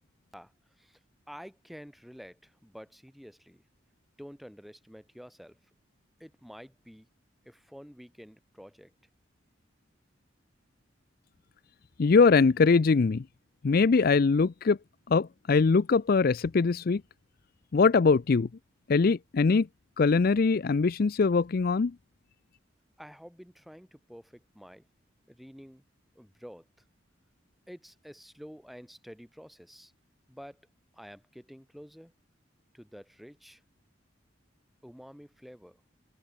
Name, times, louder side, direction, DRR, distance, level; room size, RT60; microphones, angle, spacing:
voice 1, 1.3-3.6 4.2-5.6 6.2-7.1 7.5-8.9 23.0-24.9 25.3-25.8 26.2-26.7 27.7-29.9 30.3-30.6 30.9-32.1 32.7-33.6 34.8-35.8, equal, ahead, 3.5 m, -49 dB
voice 2, 12.0-13.2 13.6-14.8 15.1-17.0 17.7-18.5 18.9-19.7 20.0-21.9, left 4 dB, 50° left, 0.4 m, -22 dB
open air
head